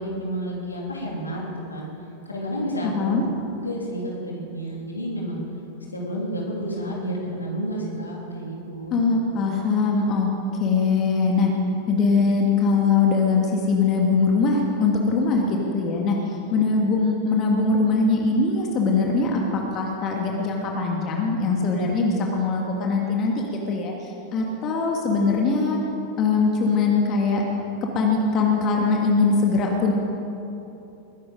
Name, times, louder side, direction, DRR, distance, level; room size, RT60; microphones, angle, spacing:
voice 1, 0.0-1.4 1.7-1.9 2.2-3.1 3.6-5.4 5.9-8.9, equal, 80° left, -3 dB, 3.3 m, -30 dB
voice 2, 2.8-3.2 8.9-10.3 10.6-11.5 11.9-25.8 26.2-27.4 27.8-29.9, left 4 dB, 35° left, 0 dB, 1.9 m, -22 dB
21.0 x 10.5 x 5.2 m, 2.9 s
figure-of-eight pair, 90°, 0 cm